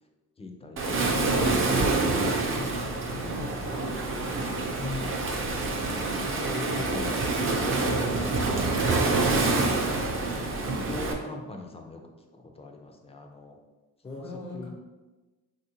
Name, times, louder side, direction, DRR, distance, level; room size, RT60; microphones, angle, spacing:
voice 1, 0.4-1.4 3.6-4.1 4.9-7.3 7.8-13.6 14.0-14.2 14.5-14.7, left 2 dB, 20° left, 3 dB, 0.4 m, -42 dB
Waves surf, 0.8-11.1, right 3 dB, 45° right, 0.5 m, -27 dB
voice 2, 0.9-4.5 4.8-5.4 14.1-14.7, left 3 dB, 65° left, 0 dB, 0.7 m, -41 dB
3.2 x 2.5 x 2.8 m, 1.2 s
cardioid pair, 90°, 30 cm